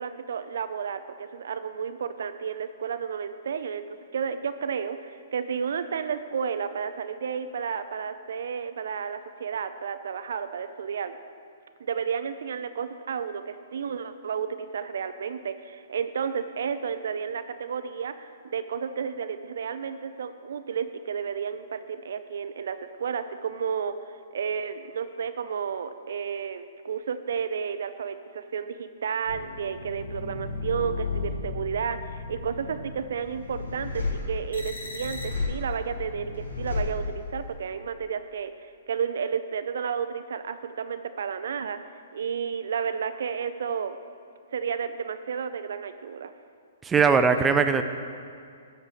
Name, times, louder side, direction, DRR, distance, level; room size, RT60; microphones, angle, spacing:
voice 1, 0.0-3.9 4.1-11.2 11.8-23.9 24.3-41.8 42.1-44.0 44.5-46.3, right 7 dB, 65° right, 10 dB, 0.5 m, -32 dB
sound 1, 29.3-37.6, left 3 dB, 80° left, 1.9 m, -34 dB
voice 2, 46.8-47.8, right 5 dB, 15° right, 7 dB, 0.5 m, -20 dB
12.0 x 4.4 x 6.8 m, 2.2 s
figure-of-eight pair, 120°, 0 cm